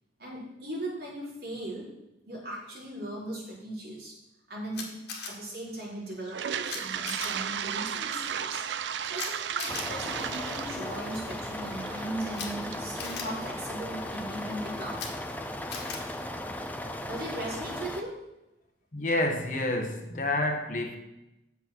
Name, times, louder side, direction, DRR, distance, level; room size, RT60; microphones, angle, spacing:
voice 1, 0.2-1.9 2.3-4.1 4.5-4.9 5.2-8.6 9.0-15.0 17.1-18.1, right 1 dB, 60° right, -6 dB, 4.5 m, -38 dB
Camera, 4.7-5.3 6.7-6.8 7.1-7.3 9.1-9.3 9.6-9.8 12.3-12.5 13.0-13.2 14.9-15.1 15.7-16.0, left 5 dB, 65° left, 1.9 m, -37 dB
Toilet flush, 6.2-14.2, right 8 dB, 80° right, 0.4 m, -35 dB
sound 1, 9.7-18.0, left 1 dB, 10° left, 0.6 m, -37 dB
voice 2, 18.9-21.0, left 1 dB, 45° left, 4 dB, 1.3 m, -28 dB
8.8 x 7.2 x 6.1 m, 0.92 s
head